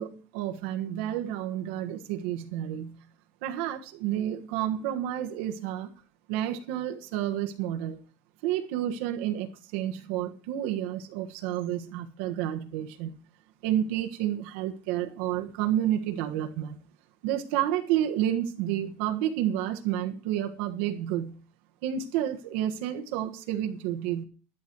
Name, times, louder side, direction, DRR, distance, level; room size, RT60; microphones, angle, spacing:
voice 1, 0.0-3.0 3.4-5.9 6.3-8.0 8.4-13.1 13.6-16.8 17.2-21.4 21.8-24.2, right 11 dB, 85° right, 4 dB, 1.4 m, -30 dB
11.5 x 11.0 x 4.6 m, 0.38 s
cardioid pair, 180°, 6 cm